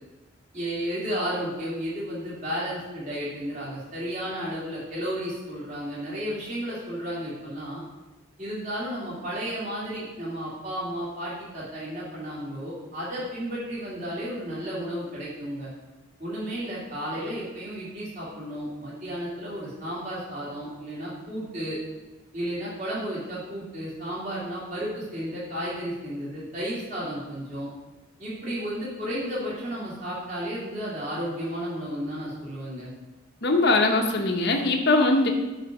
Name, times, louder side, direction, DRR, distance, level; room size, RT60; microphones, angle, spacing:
voice 1, 0.5-7.8 8.4-15.7 16.2-21.8 22.3-27.7 28.2-32.9, equal, 40° right, -8 dB, 3.1 m, -33 dB
voice 2, 33.4-35.3, left 2 dB, 55° left, 2 dB, 0.9 m, -21 dB
10.0 x 4.0 x 6.1 m, 1.2 s
head